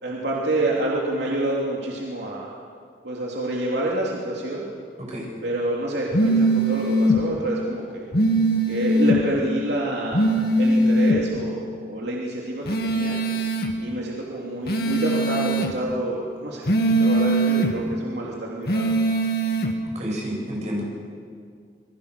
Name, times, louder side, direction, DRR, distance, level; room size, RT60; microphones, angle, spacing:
voice 1, 0.0-2.5 3.0-4.6 5.4-8.1 8.7-13.2 13.8-16.7 17.0-18.9, right 1 dB, 75° right, -3 dB, 3.1 m, -27 dB
sound 1, 6.1-7.2 8.1-9.2 10.1-11.2 12.7-13.7 14.7-15.7 16.7-17.7 18.7-19.7, right 1 dB, 60° left, 2.2 m, -21 dB
voice 2, 19.9-20.8, equal, 40° right, -2 dB, 7.7 m, -30 dB
27.5 x 21.5 x 6.8 m, 2.1 s
head